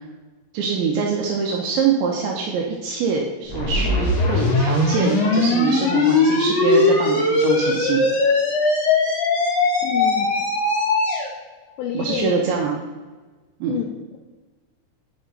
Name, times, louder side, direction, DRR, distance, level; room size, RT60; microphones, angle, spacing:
voice 1, 0.5-8.1 11.9-12.8 13.6-13.7, right 6 dB, 75° right, -1 dB, 2.9 m, -24 dB
sound 1, 3.5-11.3, left 3 dB, 65° left, 4.3 m, -19 dB
voice 2, 9.8-10.5 11.8-12.5 13.7-14.2, left 9 dB, 90° left, 1 dB, 2.6 m, -28 dB
11.5 x 5.6 x 4.0 m, 1.3 s
omnidirectional pair, 5.9 m